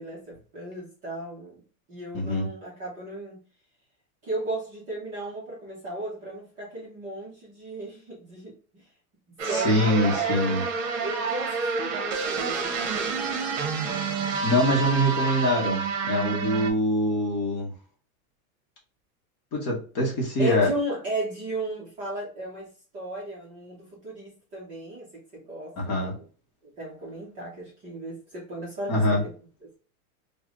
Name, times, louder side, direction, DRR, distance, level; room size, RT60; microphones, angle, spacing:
voice 1, 0.0-1.6 1.9-3.4 4.2-8.8 9.5-10.4 11.0-13.2 20.4-26.2 26.8-29.3, right 2 dB, 20° right, 0.6 m, -35 dB
voice 2, 2.1-2.5 9.4-10.6 13.9-14.2 14.4-17.7 19.5-20.7 25.8-26.1 28.9-29.2, equal, 25° left, 0.8 m, -24 dB
sound 1, 9.4-16.7, right 4 dB, 55° right, 0.9 m, -28 dB
3.2 x 2.1 x 3.6 m
supercardioid pair, 170°, 44 cm